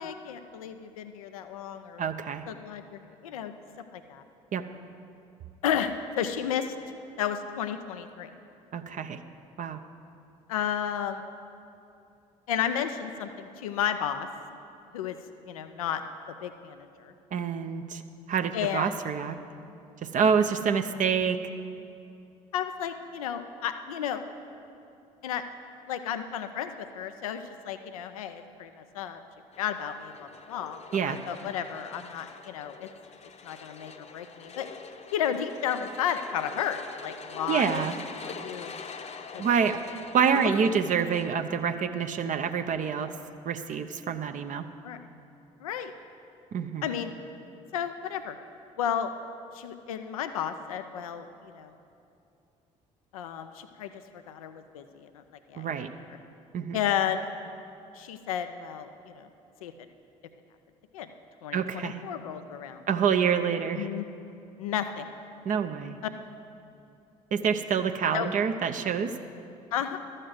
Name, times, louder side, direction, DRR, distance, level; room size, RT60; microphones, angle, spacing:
voice 1, 0.0-2.1 2.5-3.5 3.9-4.2 5.6-6.7 7.2-8.3 10.5-11.2 12.5-14.3 14.9-15.2 15.5-16.0 16.3-17.1 18.5-18.9 22.5-24.2 25.2-25.4 25.9-29.2 29.6-32.9 33.4-34.7 35.1-38.8 39.3-39.4 40.3-40.5 43.0-43.1 44.8-45.0 45.6-45.9 46.8-47.1 47.7-48.4 48.8-49.1 49.5-51.7 53.1-53.9 54.3-55.2 55.5-55.7 56.7-57.3 57.9-59.3 59.6-59.7 60.9-61.1 61.4-62.8 63.8-64.1 64.6-65.1 68.1-68.3 69.7-70.0, left 9 dB, 85° left, 9 dB, 0.5 m, -33 dB
voice 2, 2.0-2.4 4.5-4.6 8.7-9.2 9.6-9.8 17.3-18.0 18.3-19.4 20.0-21.4 30.9-31.2 37.5-38.0 39.4-39.8 40.1-43.1 43.5-44.7 46.5-46.9 55.6-55.9 56.5-56.8 61.5-62.0 62.9-63.9 65.4-66.0 67.3-69.2, right 7 dB, 45° right, 7 dB, 0.6 m, -27 dB
sound 1, 29.5-41.3, left 5 dB, 40° left, 0.8 m, -45 dB
12.5 x 6.5 x 7.6 m, 2.6 s
hypercardioid pair, 55°, 17 cm